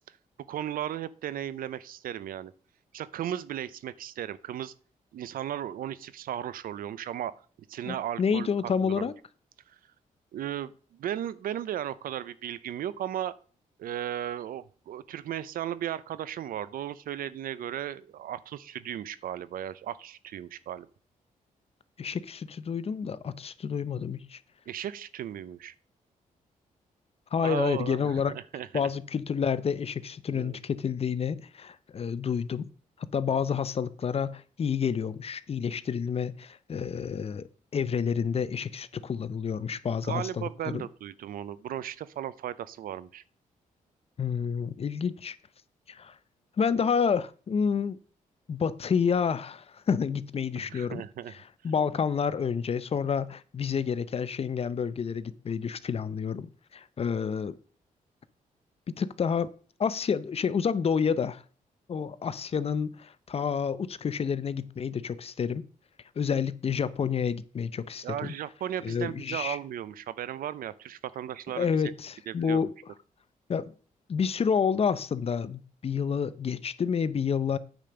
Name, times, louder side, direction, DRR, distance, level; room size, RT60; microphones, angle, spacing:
voice 1, 0.5-2.5 2.9-4.7 5.1-7.4 7.7-9.1 9.7-9.8 10.3-13.3 13.8-20.9 24.7-25.7 27.4-28.8 30.3-30.6 40.0-43.2 50.6-51.3 68.0-71.8 72.3-72.7, right 11 dB, 85° right, 0.6 m, -36 dB
voice 2, 7.8-9.1 22.0-24.4 27.3-28.3 28.7-32.7 33.0-40.8 44.2-45.4 45.9-46.1 46.6-48.0 48.5-51.0 51.6-57.6 59.0-59.5 59.8-61.4 61.9-65.6 66.2-68.3 68.8-69.6 71.5-72.7 73.5-73.7 74.1-77.6, left 6 dB, 45° left, 0.7 m, -29 dB
9.0 x 5.1 x 6.9 m
cardioid pair, 100°, 14 cm